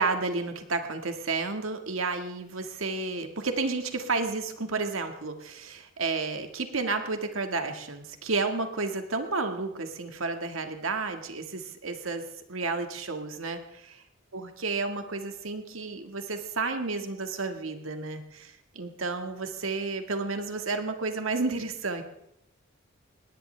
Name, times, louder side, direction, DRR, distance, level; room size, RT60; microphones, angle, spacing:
voice 1, 0.0-14.0 14.3-22.0, right 3 dB, 80° right, 6 dB, 1.7 m, -31 dB
20.5 x 18.0 x 3.3 m, 0.78 s
head